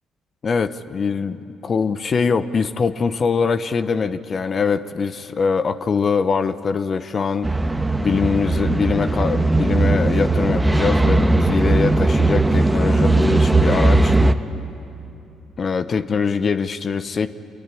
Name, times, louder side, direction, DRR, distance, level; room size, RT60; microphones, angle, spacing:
voice 1, 0.4-1.4 1.6-7.5 8.0-14.1 15.6-17.3, left 5 dB, 45° left, 12 dB, 0.8 m, -22 dB
sound 1, 7.4-14.3, right 2 dB, 10° right, 1.2 m, -18 dB
27.0 x 20.5 x 9.9 m, 2.7 s
supercardioid pair, 70°, 0 cm